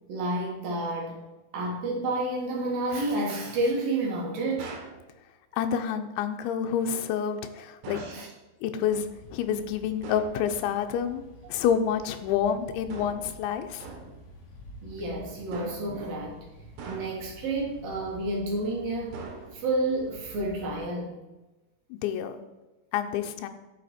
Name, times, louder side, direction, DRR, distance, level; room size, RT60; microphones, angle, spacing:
voice 1, 0.1-1.2 1.5-4.8 7.9-8.3 14.8-16.4 16.9-19.2 19.5-21.2, right 2 dB, 60° right, -2 dB, 2.9 m, -30 dB
sound 1, 4.6-5.0 7.8-8.2 10.0-10.4 12.9-13.3 13.8-14.2 15.5-16.0 16.8-17.4 19.1-19.8, right 4 dB, 85° right, 3.7 m, -42 dB
voice 2, 5.5-8.0 8.6-11.2 11.5-13.9 21.9-22.4 22.9-23.5, left 8 dB, 85° left, 7 dB, 3.1 m, -28 dB
sound 2, 8.8-20.9, equal, 55° left, 3.2 m, -49 dB
10.5 x 6.9 x 4.3 m, 1.1 s
omnidirectional pair, 5.1 m